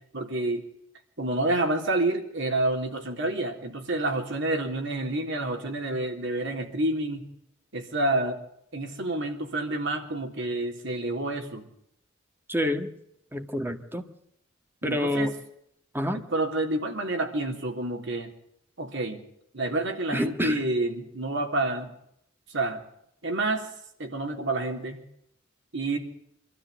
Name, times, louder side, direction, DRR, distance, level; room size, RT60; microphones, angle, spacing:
voice 1, 0.1-0.6 1.2-7.3 7.7-8.4 8.7-11.7 14.8-15.3 16.1-18.3 18.8-19.2 19.5-21.9 22.5-22.8 23.2-23.7 24.0-25.0 25.7-26.0, right 2 dB, 65° right, 4 dB, 3.5 m, -28 dB
voice 2, 12.5-12.9 13.3-14.0 14.8-15.3 15.9-16.2 20.1-20.6, equal, 10° right, 7 dB, 1.7 m, -27 dB
25.5 x 13.5 x 8.2 m, 0.77 s
head